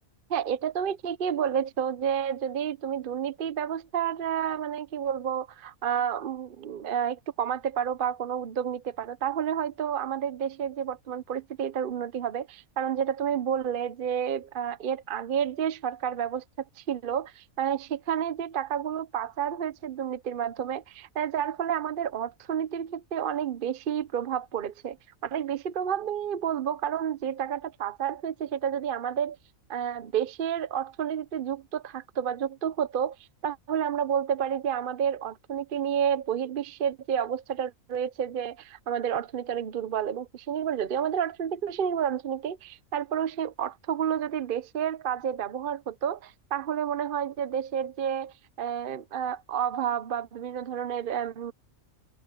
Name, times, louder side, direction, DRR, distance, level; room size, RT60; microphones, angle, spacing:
voice 1, 0.3-16.4 16.8-25.0 25.2-29.4 29.7-33.2 33.4-51.5, right 8 dB, 50° right, 0.7 m, -30 dB
omnidirectional pair, 1.5 m